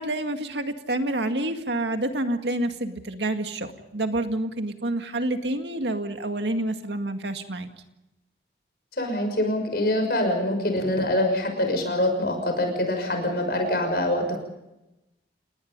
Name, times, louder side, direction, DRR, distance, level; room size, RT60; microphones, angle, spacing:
voice 1, 0.0-7.7, right 1 dB, 75° right, 6 dB, 2.0 m, -28 dB
voice 2, 9.0-14.4, left 1 dB, 60° left, 5 dB, 6.2 m, -24 dB
29.5 x 19.0 x 5.4 m, 0.94 s
head